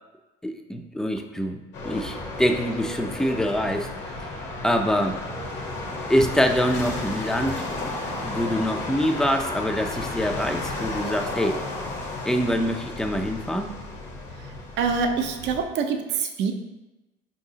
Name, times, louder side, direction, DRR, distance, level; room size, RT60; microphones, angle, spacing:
voice 1, 0.4-3.9 4.6-5.2 6.1-7.6 7.8-11.6 12.3-13.7, equal, 5° left, 5 dB, 0.4 m, -25 dB
sound 1, 1.7-15.6, left 2 dB, 60° left, 1.0 m, -33 dB
voice 2, 14.8-16.5, right 5 dB, 60° right, 5 dB, 0.5 m, -25 dB
4.6 x 2.8 x 2.7 m, 1.1 s
supercardioid pair, 75°, 21 cm